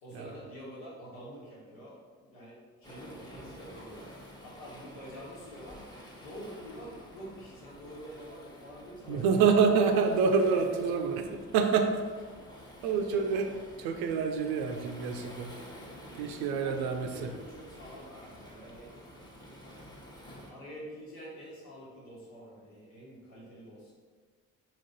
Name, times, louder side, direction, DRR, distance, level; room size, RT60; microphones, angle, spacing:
voice 1, 0.0-4.1 4.4-5.8 6.2-9.8 10.5-10.8 12.8-13.2 16.6-18.9 20.5-23.9, equal, 70° left, -6 dB, 1.4 m, -47 dB
Waves surf, 2.8-20.5, equal, 10° left, 0.9 m, -50 dB
voice 2, 9.1-11.1 11.5-11.9 12.8-13.4 13.8-15.6 16.2-17.1, right 5 dB, 65° right, 5 dB, 0.6 m, -26 dB
4.2 x 2.9 x 4.0 m, 1.5 s
figure-of-eight pair, 40°, 41 cm